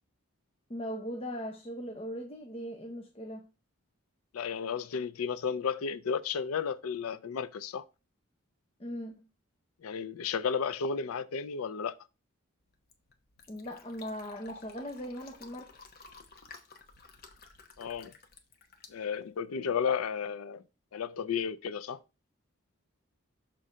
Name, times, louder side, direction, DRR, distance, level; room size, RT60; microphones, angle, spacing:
voice 1, 0.7-3.5 8.8-9.3 13.5-15.8, equal, 25° left, 0.6 m, -39 dB
voice 2, 4.3-7.8 9.8-12.0 17.8-18.1 18.9-20.6 20.9-22.0, left 6 dB, 90° left, 0.4 m, -33 dB
Fill (with liquid), 12.6-19.7, left 4 dB, 45° left, 1.0 m, -53 dB
6.3 x 3.8 x 5.4 m
head